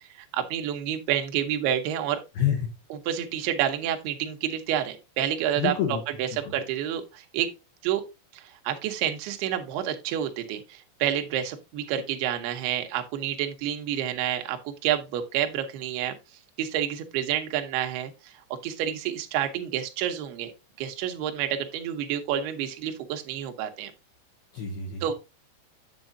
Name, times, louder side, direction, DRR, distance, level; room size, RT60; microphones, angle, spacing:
voice 1, 0.0-2.2 3.1-5.7 6.2-7.5 7.8-8.0 8.3-16.1 16.6-20.5 20.8-23.9 25.0-25.1, right 10 dB, 80° right, 2.3 m, -29 dB
voice 2, 2.4-2.8 5.6-6.0 6.4-6.5 24.5-25.1, left 9 dB, 80° left, 2.2 m, -28 dB
8.1 x 7.5 x 2.6 m
omnidirectional pair, 5.9 m